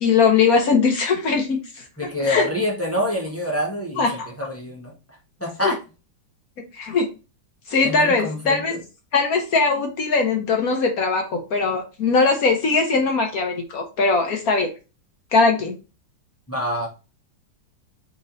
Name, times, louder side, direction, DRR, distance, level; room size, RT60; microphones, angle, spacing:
voice 1, 0.0-1.8 2.2-2.5 4.0-4.3 5.6-5.7 6.7-7.1 7.7-8.7 9.1-14.7 15.3-15.7, left 4 dB, 60° left, 3 dB, 1.1 m, -20 dB
voice 2, 2.0-4.1 4.4-4.9 5.4-5.8 7.8-8.8 16.5-16.9, left 1 dB, 15° left, -2 dB, 0.6 m, -26 dB
4.3 x 2.9 x 3.9 m, 0.31 s
omnidirectional pair, 2.1 m